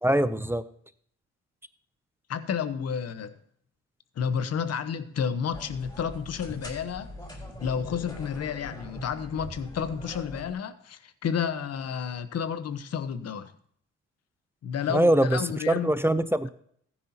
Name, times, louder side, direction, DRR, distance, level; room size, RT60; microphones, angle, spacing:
voice 1, 0.0-0.6 14.9-16.5, right 1 dB, 10° right, 0.5 m, -23 dB
voice 2, 2.3-3.4 4.2-7.1 7.6-13.5 14.6-15.9, left 7 dB, 55° left, 1.1 m, -31 dB
sound 1, 5.5-10.5, left 1 dB, 15° left, 4.2 m, -42 dB
15.0 x 10.0 x 2.9 m
cardioid pair, 90°, 30 cm